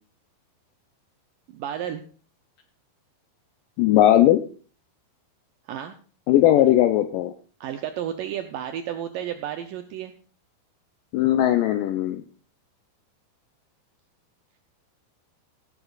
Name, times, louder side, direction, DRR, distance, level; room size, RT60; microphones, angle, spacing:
voice 1, 1.5-2.0 5.7-6.0 7.6-10.1, right 10 dB, 85° right, 7 dB, 1.9 m, -32 dB
voice 2, 3.8-4.4 6.3-7.3 11.1-12.2, left 13 dB, 90° left, 8 dB, 1.9 m, -18 dB
17.5 x 11.0 x 2.4 m, 0.39 s
omnidirectional pair, 4.7 m